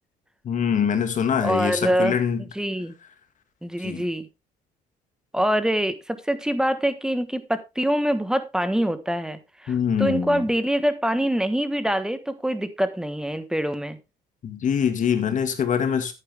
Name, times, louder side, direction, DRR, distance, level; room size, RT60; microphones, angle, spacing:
voice 1, 0.4-2.4 3.8-4.1 9.7-10.4 14.4-16.1, left 7 dB, 50° left, 2.0 m, -24 dB
voice 2, 1.4-2.2 2.5-2.9 3.6-4.3 5.3-14.0, equal, 5° right, 1.3 m, -25 dB
10.5 x 9.2 x 3.5 m
cardioid pair, 110°, 17 cm